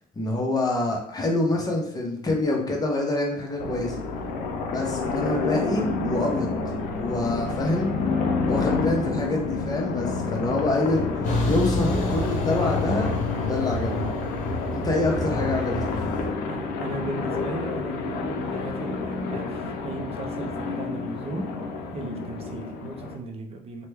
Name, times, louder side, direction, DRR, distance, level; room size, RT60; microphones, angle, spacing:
voice 1, 0.2-4.0 4.7-6.5 6.9-7.9 8.5-11.1 11.4-14.1 14.7-16.1, left 2 dB, 25° left, 0 dB, 0.8 m, -26 dB
sound 1, 3.6-23.2, left 4 dB, 80° left, 0.5 m, -29 dB
Truck, 11.2-16.3, equal, 45° left, 1.0 m, -30 dB
voice 2, 16.4-21.5 21.9-23.9, right 2 dB, 35° right, 1 dB, 0.5 m, -36 dB
2.9 x 2.2 x 3.3 m, 0.66 s
cardioid pair, 110°, 17 cm